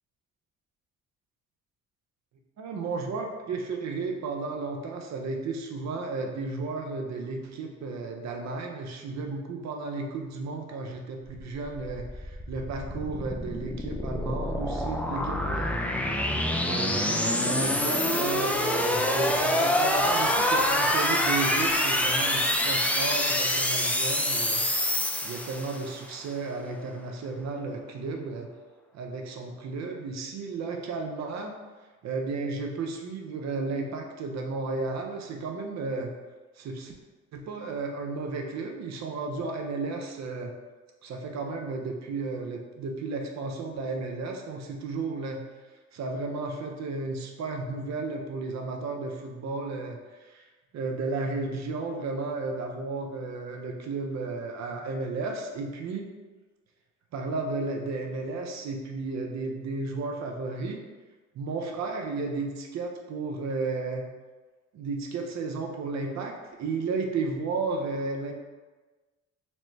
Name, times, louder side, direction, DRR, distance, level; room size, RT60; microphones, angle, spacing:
voice 1, 2.6-15.8 16.6-24.6 25.2-28.5 28.9-31.5 32.0-36.1 36.6-36.9 37.3-40.5 41.0-45.4 45.9-50.4 50.7-56.1 57.1-60.8 61.3-64.0 64.7-68.3, right 3 dB, 60° right, 2 dB, 0.6 m, -33 dB
sound 1, 11.7-26.0, left 1 dB, 5° left, 0.3 m, -26 dB
4.2 x 2.1 x 3.1 m, 1.3 s
cardioid pair, 90°, 30 cm